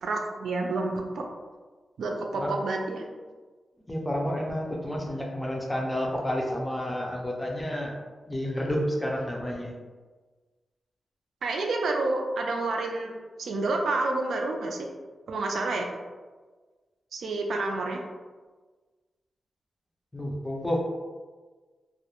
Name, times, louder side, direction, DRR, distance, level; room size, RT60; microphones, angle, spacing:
voice 1, 0.0-1.3 2.0-3.0 11.4-13.1 13.4-14.9 15.3-15.9 17.1-18.0, right 2 dB, 90° right, 2 dB, 0.3 m, -29 dB
voice 2, 3.9-7.9 8.3-9.7 20.1-20.8, equal, 10° left, -1 dB, 0.4 m, -30 dB
2.3 x 2.0 x 2.9 m, 1.4 s
wide cardioid pair, 145°, 0 cm